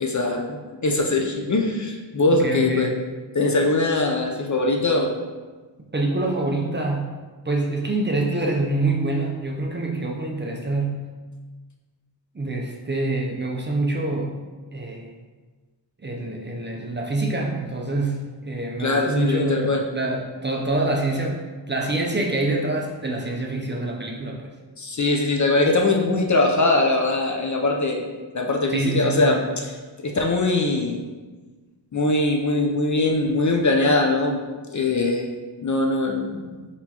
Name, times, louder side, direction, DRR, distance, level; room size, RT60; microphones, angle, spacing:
voice 1, 0.0-2.9 3.3-5.1 18.8-19.8 24.8-28.0 28.3-31.0 31.9-34.5 34.7-35.3 35.6-36.5, left 2 dB, 40° left, 2 dB, 0.5 m, -22 dB
voice 2, 2.3-2.9 5.9-11.0 12.3-14.4 14.7-15.1 16.0-21.4 21.7-24.5 28.7-29.2, right 2 dB, 25° right, 0 dB, 0.5 m, -26 dB
4.4 x 4.2 x 2.8 m, 1.3 s
wide cardioid pair, 95°, 45 cm